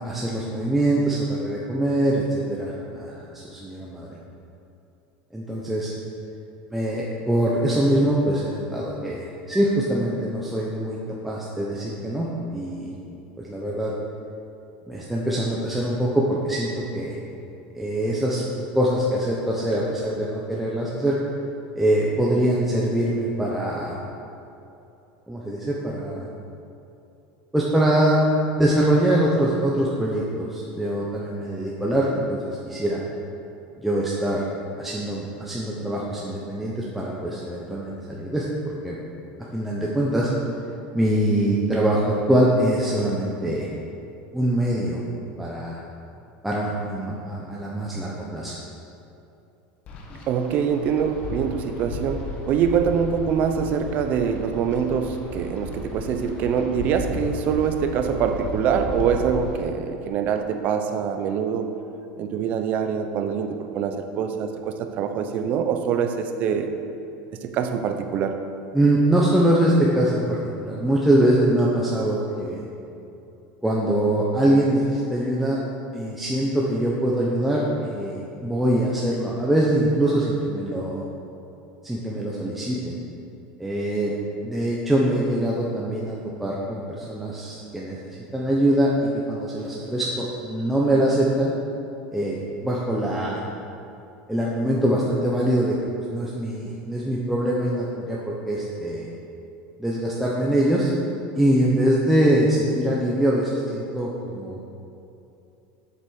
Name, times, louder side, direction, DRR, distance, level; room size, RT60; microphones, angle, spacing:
voice 1, 0.0-4.1 5.3-5.9 6.7-11.0 11.2-12.9 13.4-13.9 14.9-17.2 17.7-18.4 18.7-21.2 21.8-24.0 25.3-26.3 27.5-28.2 28.6-33.0 33.8-34.4 34.8-38.4 38.8-38.9 39.5-40.3 40.9-43.7 44.3-45.0 45.4-45.8 46.4-48.5 68.7-72.6 73.6-75.6 75.9-81.0 81.8-83.0 83.6-84.1 84.4-91.5 92.1-92.4 92.6-93.4 94.3-95.7 96.1-99.1 99.8-100.9 101.4-104.6, right 1 dB, 5° right, -5 dB, 0.9 m, -23 dB
Wind, 49.9-59.6, left 2 dB, 35° left, 1.2 m, -35 dB
voice 2, 50.3-61.7 62.2-66.7 67.4-68.4, right 7 dB, 40° right, 7 dB, 0.8 m, -24 dB
8.3 x 7.2 x 6.4 m, 2.8 s
supercardioid pair, 160°, 4 cm